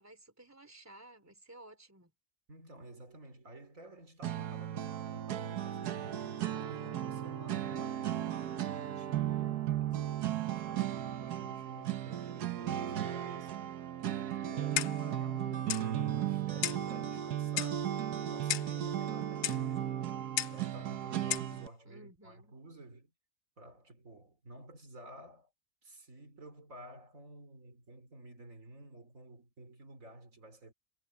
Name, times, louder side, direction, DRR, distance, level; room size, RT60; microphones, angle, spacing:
voice 1, 0.0-2.1 21.8-22.6, right 1 dB, 10° right, 3.1 m, -55 dB
voice 2, 2.5-6.3 6.7-13.5 14.0-17.9 18.2-19.9 20.5-23.1 23.6-25.5 25.8-30.7, right 1 dB, 55° right, 3.8 m, -53 dB
sound 1, 4.2-21.7, right 11 dB, 90° right, 1.5 m, -35 dB
Clock, 14.8-15.1 15.7-15.9 16.6-16.9 17.6-17.8 18.5-18.8 19.4-19.6 20.4-20.6 21.3-21.5, left 11 dB, 65° left, 0.7 m, -34 dB
omnidirectional pair, 1.6 m